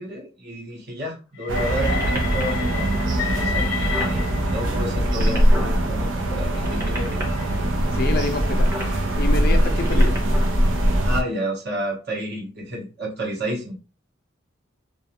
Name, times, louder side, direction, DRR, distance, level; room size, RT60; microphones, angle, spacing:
voice 1, 0.0-7.4 11.0-13.8, right 1 dB, 55° right, 0.9 m, -31 dB
Train, 1.4-4.8 5.6-10.9, left 7 dB, 80° left, 0.8 m, -34 dB
sound 1, 1.5-11.2, right 1 dB, 85° right, 0.5 m, -21 dB
sound 2, 1.8-2.6 3.2-3.3 3.6-4.2 4.8-5.7 6.5-7.2 8.5-8.9 9.7-10.5 11.3-11.4, equal, 15° right, 0.7 m, -33 dB
voice 2, 7.9-8.7 9.2-10.2, left 2 dB, 50° left, 0.5 m, -27 dB
2.4 x 2.3 x 2.8 m
head